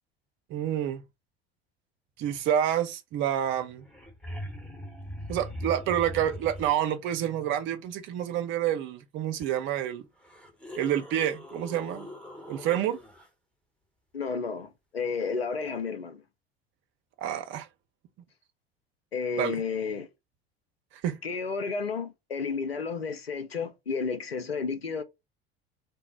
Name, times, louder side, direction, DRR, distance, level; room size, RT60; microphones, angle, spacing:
voice 1, 0.5-1.0 2.2-3.8 5.3-10.1 10.8-12.1 12.5-13.0 17.2-17.7 19.4-19.6 21.0-21.2, right 10 dB, 40° right, 0.6 m, -28 dB
sound 1, 3.8-6.9 9.4-9.5 10.2-13.3 15.8-15.9, left 1 dB, 5° left, 0.9 m, -41 dB
voice 2, 14.1-16.2 19.1-20.1 21.2-25.0, left 5 dB, 85° left, 0.5 m, -32 dB
3.3 x 2.0 x 4.1 m
figure-of-eight pair, 65°, 30 cm